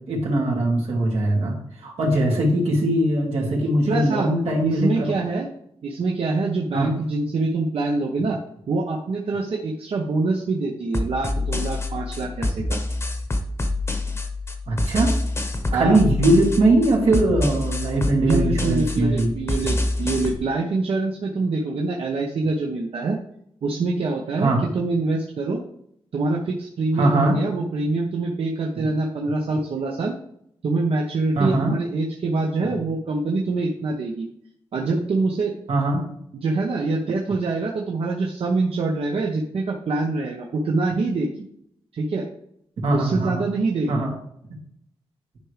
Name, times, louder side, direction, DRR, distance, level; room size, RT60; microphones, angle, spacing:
voice 1, 0.0-5.1 6.7-6.9 14.7-15.1 15.7-19.3 24.4-24.6 26.9-27.4 28.8-28.9 31.3-31.8 32.7-32.8 35.7-36.0 42.8-43.4 43.9-44.1, right 1 dB, 90° right, -3 dB, 2.6 m, -21 dB
voice 2, 3.9-4.3 4.6-5.5 5.8-8.4 8.7-12.8 15.7-16.0 18.2-23.2 23.6-25.6 26.1-30.1 30.6-34.3 34.7-35.5 36.3-41.5 41.9-42.2 42.9-44.0, right 3 dB, 70° right, -1 dB, 1.0 m, -25 dB
sound 1, 10.9-20.3, left 2 dB, 25° left, 1.0 m, -26 dB
11.0 x 4.9 x 3.3 m, 0.72 s
wide cardioid pair, 140°, 10 cm